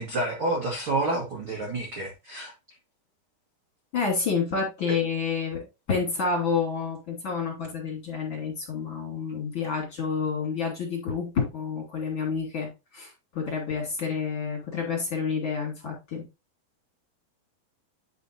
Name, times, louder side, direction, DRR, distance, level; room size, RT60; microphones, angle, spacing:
voice 1, 0.0-2.5 4.9-5.0, right 2 dB, 50° right, 1.6 m, -29 dB
voice 2, 3.9-16.3, left 5 dB, 35° left, 2.8 m, -29 dB
10.0 x 5.1 x 2.7 m
omnidirectional pair, 4.8 m